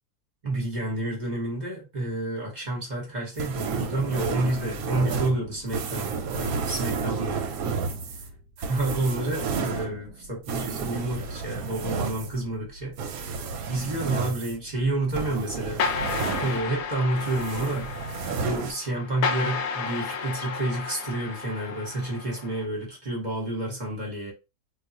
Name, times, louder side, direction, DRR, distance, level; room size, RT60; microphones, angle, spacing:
voice 1, 0.4-7.4 8.7-13.0 13.7-15.8 16.4-17.9 18.4-24.3, right 2 dB, 30° right, 1.1 m, -29 dB
sound 1, 3.4-16.9 17.2-18.7, right 5 dB, 70° right, 1.0 m, -31 dB
sound 2, 15.8-22.7, left 5 dB, 70° left, 0.8 m, -32 dB
2.6 x 2.4 x 4.0 m
omnidirectional pair, 1.8 m